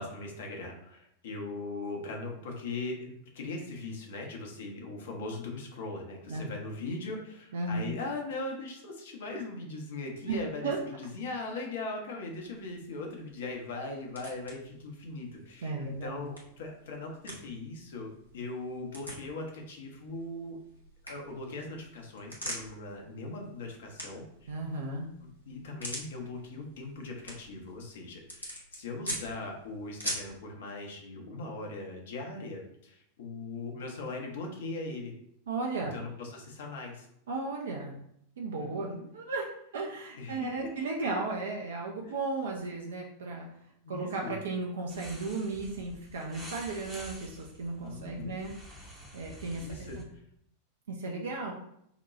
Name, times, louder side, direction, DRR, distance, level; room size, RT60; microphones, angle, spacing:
voice 1, 0.0-18.1 18.3-20.6 21.0-24.5 25.2-35.1 35.8-37.1 38.6-39.1 40.2-40.5 42.0-42.1 43.8-44.4 47.8-48.3 49.6-50.0, left 2 dB, 60° left, 1 dB, 0.7 m, -40 dB
voice 2, 7.5-7.9 10.3-10.4 10.6-10.8 15.6-16.3 24.5-25.1 35.5-36.0 37.3-37.9 38.4-39.5 39.7-43.5 43.9-48.5 49.1-49.9 50.9-51.5, right 3 dB, 65° right, 0 dB, 0.4 m, -35 dB
sound 1, 12.2-30.4, equal, 90° left, 0.9 m, -45 dB
sound 2, 44.9-50.0, right 1 dB, 10° right, 0.7 m, -48 dB
2.9 x 2.2 x 3.9 m, 0.73 s
figure-of-eight pair, 90°, 0 cm